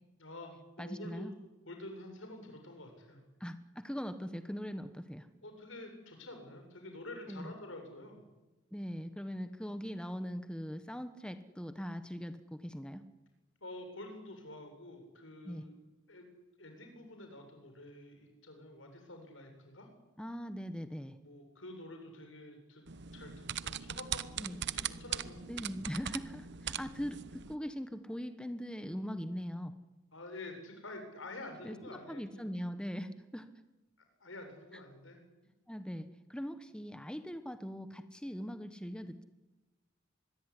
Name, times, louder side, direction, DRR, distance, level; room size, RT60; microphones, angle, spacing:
voice 1, 0.2-1.3 1.7-3.2 5.4-8.2 13.6-15.7 16.1-16.3 16.6-19.9 21.2-22.9 23.1-24.5 24.7-25.4 30.1-32.4 34.2-35.2, left 2 dB, 75° left, 5 dB, 7.4 m, -48 dB
voice 2, 0.8-1.3 3.4-5.3 7.3-7.5 8.7-13.0 15.4-15.6 20.2-21.2 24.4-24.6 25.5-29.7 31.6-31.8 32.1-33.5 35.7-39.2, equal, 5° left, 10 dB, 1.2 m, -41 dB
sound 1, 22.9-27.6, right 9 dB, 60° right, 1.0 m, -40 dB
25.0 x 22.0 x 10.0 m, 1.1 s
head